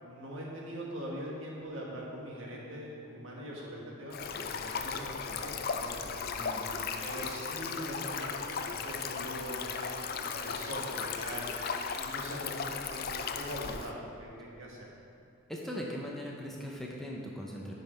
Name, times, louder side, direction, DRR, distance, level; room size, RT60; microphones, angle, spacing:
voice 1, 0.0-6.3 7.0-9.9 10.2-11.5 12.0-14.9, equal, 65° right, -3 dB, 1.6 m, -42 dB
Stream, 4.1-13.9, left 5 dB, 45° left, 0.4 m, -36 dB
voice 2, 15.5-17.7, equal, ahead, -3 dB, 0.7 m, -39 dB
9.4 x 5.5 x 4.4 m, 2.4 s
head